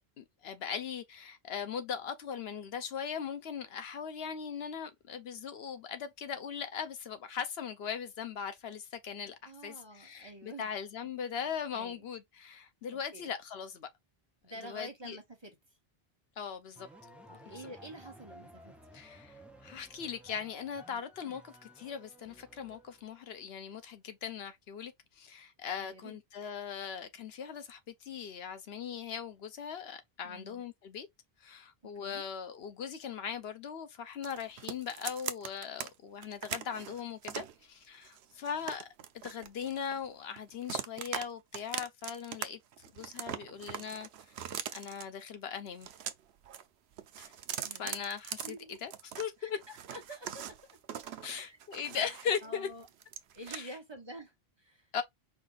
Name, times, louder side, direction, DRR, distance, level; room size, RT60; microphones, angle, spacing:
voice 1, 0.0-13.9 14.6-15.2 16.4-16.9 17.5-17.6 18.9-31.1 31.4-38.9 39.2-42.6 42.9-44.1 44.7-45.9 47.2-47.3 47.8-49.6 51.2-52.7 53.5-53.7 54.9-55.0, left 7 dB, 80° left, 1.0 m, -39 dB
voice 2, 9.4-10.7 11.0-11.1 11.7-12.1 12.9-13.3 14.4-15.6 17.3-19.0 25.8-26.2 30.2-30.6 32.0-32.2 47.6-47.9 48.4-48.8 49.4-50.8 51.2-52.1 52.4-52.9 53.3-54.9, right 1 dB, 25° right, 1.4 m, -49 dB
sound 1, 16.8-23.2, right 1 dB, ahead, 0.7 m, -55 dB
sound 2, 34.2-35.9 36.2-37.5 38.0-40.1 40.4-41.3 41.5-42.4 42.7-45.0 45.7-46.6 46.9-49.3 49.6-52.5 52.8-53.6, right 9 dB, 85° right, 0.9 m, -41 dB
5.0 x 2.5 x 3.9 m
omnidirectional pair, 1.0 m